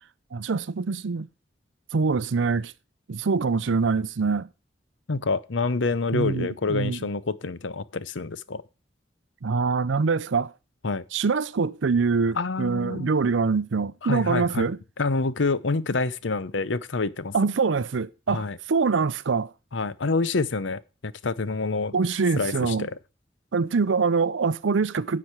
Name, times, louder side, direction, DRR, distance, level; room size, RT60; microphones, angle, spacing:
voice 1, 0.3-1.3 1.9-2.7 3.1-4.5 6.1-7.1 9.4-10.5 11.1-14.8 17.3-19.5 21.9-22.9 23.5-25.2, right 4 dB, 80° right, 0.5 m, -24 dB
voice 2, 5.1-8.6 10.8-11.0 12.4-13.1 14.0-14.7 15.0-17.3 18.3-18.6 19.7-21.9 22.4-22.9, left 3 dB, 80° left, 0.8 m, -27 dB
10.0 x 8.6 x 4.6 m
head